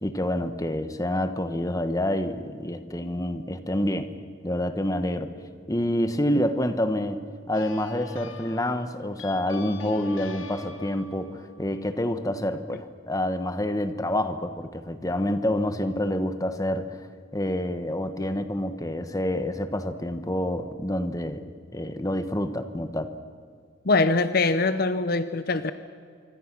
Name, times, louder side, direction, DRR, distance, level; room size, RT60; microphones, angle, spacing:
voice 1, 0.0-4.1 4.4-5.3 5.7-7.2 7.5-17.0 17.3-21.4 21.7-23.1, left 1 dB, 15° left, 9 dB, 1.3 m, -27 dB
sound 1, 7.5-12.6, left 4 dB, 90° left, 1.9 m, -44 dB
voice 2, 23.8-25.7, left 3 dB, 50° left, 12 dB, 0.8 m, -23 dB
26.0 x 24.5 x 6.1 m, 2.1 s
head